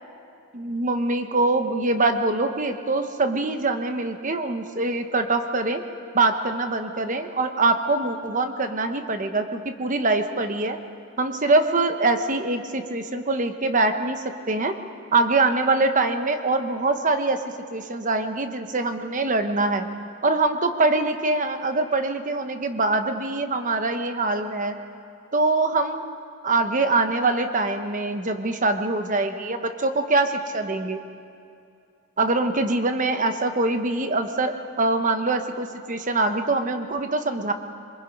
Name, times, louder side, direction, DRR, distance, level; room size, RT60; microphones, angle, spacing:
voice 1, 0.5-5.8 6.1-10.8 11.2-14.7 15.1-17.4 17.7-19.9 20.2-24.8 25.3-26.0 26.4-31.0 32.2-37.5, right 3 dB, 35° right, 7 dB, 1.1 m, -23 dB
24.5 x 22.5 x 5.4 m, 2.5 s
head